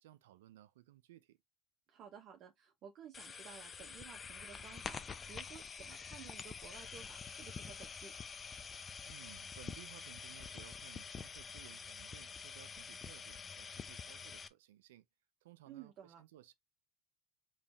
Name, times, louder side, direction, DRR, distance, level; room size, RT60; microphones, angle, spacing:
voice 1, 0.0-1.4 9.1-15.1 15.4-16.5, right 14 dB, 90° right, 0.5 m, -59 dB
voice 2, 1.9-8.1 15.7-16.2, right 8 dB, 50° right, 0.9 m, -55 dB
sound 1, 3.1-14.5, left 6 dB, 30° left, 0.6 m, -47 dB
5.0 x 3.2 x 2.7 m
supercardioid pair, 95°, 0 cm